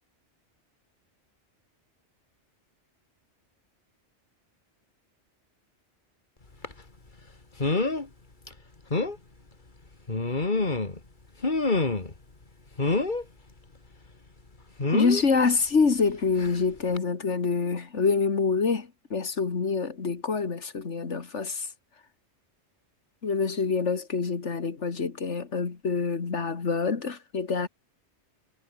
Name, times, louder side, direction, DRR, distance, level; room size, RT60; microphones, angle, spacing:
sound 1, 6.6-6.8 7.6-8.1 8.5-8.6 8.9-9.2 10.1-11.0 11.4-12.2 12.8-13.2 14.8-15.2 16.4-16.6 17.0-17.1, left 3 dB, 45° left, 2.5 m, -26 dB
voice 1, 14.9-21.7 23.2-27.7, left 4 dB, 85° left, 2.3 m, -26 dB
omnidirectional pair, 1.2 m